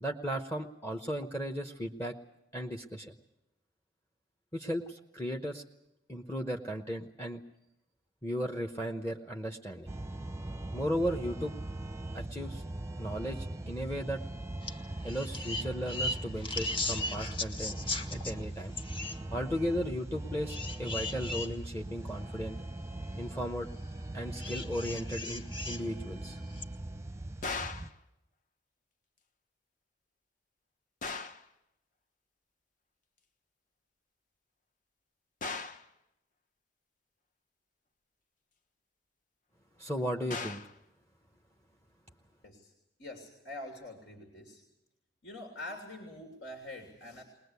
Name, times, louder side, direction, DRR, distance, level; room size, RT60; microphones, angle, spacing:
voice 1, 0.0-2.1 2.5-3.1 4.5-5.6 6.1-7.4 8.2-9.9 10.7-11.5 12.1-12.6 13.0-14.2 15.0-17.7 18.1-18.7 19.3-22.6 23.2-23.7 24.1-26.4 39.8-40.6, equal, 15° left, 4 dB, 0.9 m, -35 dB
sound 1, 9.9-27.9, right 1 dB, 15° right, 0.7 m, -40 dB
sound 2, 14.6-14.8 15.0-18.3 18.8-19.2 20.5-21.5 22.2-22.3 24.4-25.8 26.5-26.6, left 2 dB, 30° left, 1.4 m, -37 dB
sound 3, 27.4-28.0 31.0-31.5 35.4-35.9 40.3-40.8, left 4 dB, 45° left, 1.0 m, -38 dB
voice 2, 43.0-44.6 45.2-47.2, left 1 dB, 75° left, 3 dB, 3.2 m, -45 dB
21.0 x 20.5 x 8.2 m, 0.90 s
head